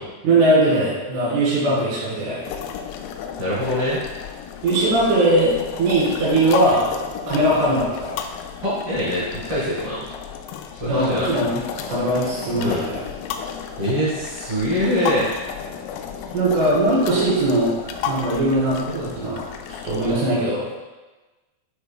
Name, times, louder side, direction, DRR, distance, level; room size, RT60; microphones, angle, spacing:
voice 1, 0.2-2.4 4.6-6.9 7.3-8.1 10.9-11.6 11.9-13.1 16.3-17.8 18.1-19.5 19.8-20.7, right 1 dB, 75° right, -7 dB, 4.7 m, -20 dB
sound 1, 2.4-20.1, left 7 dB, 85° left, 3.2 m, -33 dB
voice 2, 3.4-4.0 8.6-10.0 10.8-11.3 12.6-12.8 13.8-15.3, equal, 50° right, -9 dB, 1.7 m, -23 dB
9.5 x 4.6 x 2.3 m, 1.2 s
omnidirectional pair, 5.9 m